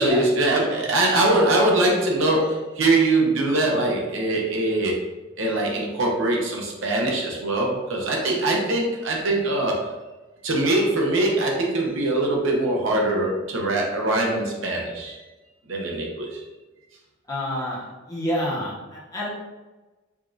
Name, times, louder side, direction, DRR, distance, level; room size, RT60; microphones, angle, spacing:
voice 1, 0.0-5.0 5.4-9.9 10.4-15.2 15.7-16.4, right 2 dB, 70° right, -1 dB, 0.8 m, -22 dB
voice 2, 17.3-19.3, equal, 20° left, -6 dB, 1.0 m, -29 dB
5.0 x 2.5 x 2.5 m, 1.2 s
head